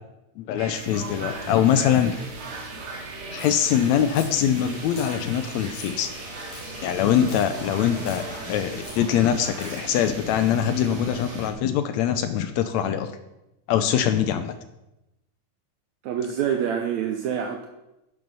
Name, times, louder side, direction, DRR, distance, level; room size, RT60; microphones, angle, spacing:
voice 1, 0.4-2.3 3.3-6.1 6.8-13.1 13.7-14.6, left 9 dB, 80° left, 9 dB, 1.8 m, -23 dB
sound 1, 0.6-11.5, right 3 dB, 50° right, 2.3 m, -38 dB
sound 2, 3.4-3.6 4.1-4.4 4.9-5.2 5.7-6.0 6.5-6.7 7.3-7.5 8.0-8.2 8.8-9.0 9.6-9.8, left 4 dB, 65° left, 3.5 m, -42 dB
sound 3, 3.5-8.8, left 3 dB, 45° left, 1.4 m, -45 dB
voice 2, 16.0-17.7, right 8 dB, 75° right, 4 dB, 1.9 m, -26 dB
10.0 x 6.9 x 5.5 m, 0.93 s
omnidirectional pair, 3.5 m